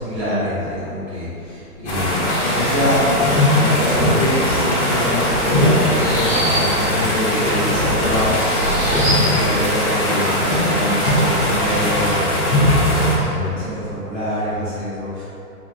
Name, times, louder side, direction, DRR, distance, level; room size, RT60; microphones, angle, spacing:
voice 1, 0.0-8.4 8.9-15.2, left 1 dB, 5° right, -24 dB, 0.7 m, -25 dB
sound 1, 1.9-13.2, left 1 dB, 45° left, 1.0 m, -19 dB
sound 2, 2.3-12.1, equal, 30° right, 1.3 m, -26 dB
3.5 x 2.8 x 3.3 m, 2.7 s
hypercardioid pair, 170°, 47 cm